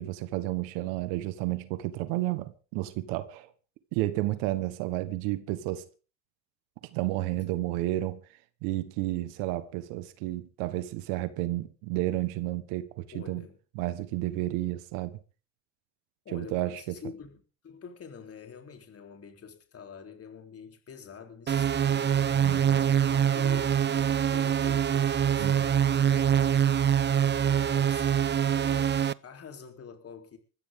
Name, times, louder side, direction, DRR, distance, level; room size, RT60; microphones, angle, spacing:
voice 1, 0.0-3.5 3.9-5.8 6.9-8.2 8.6-13.4 13.7-15.2 16.3-16.8 22.3-22.8 25.4-25.6, right 16 dB, 90° right, 1.6 m, -31 dB
voice 2, 13.1-13.6 16.2-28.1 28.5-30.4, left 6 dB, 45° left, 3.9 m, -47 dB
sound 1, 21.5-29.1, right 9 dB, 30° right, 0.7 m, -24 dB
21.0 x 14.5 x 3.9 m
supercardioid pair, 90°, 34 cm